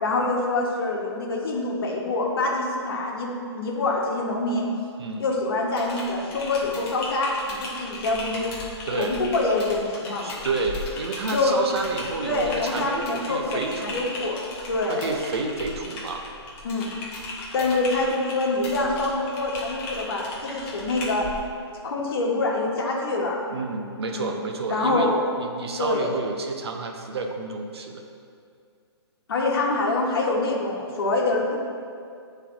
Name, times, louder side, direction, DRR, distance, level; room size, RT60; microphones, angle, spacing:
voice 1, 0.0-3.3 3.5-4.6 5.2-8.5 8.9-10.3 11.3-11.6 12.2-14.4 14.7-15.1 16.6-16.9 17.5-21.3 21.8-23.4 24.1-24.3 24.7-25.3 25.8-26.2 29.3-31.6, left 2 dB, 55° left, -2 dB, 1.1 m, -25 dB
Typing, 5.7-21.4, left 2 dB, 15° left, 0.6 m, -37 dB
voice 2, 8.9-9.2 10.2-14.1 14.9-16.2 23.5-28.0, right 3 dB, 65° right, 4 dB, 0.8 m, -30 dB
8.6 x 3.3 x 3.7 m, 2.3 s
hypercardioid pair, 165°, 15 cm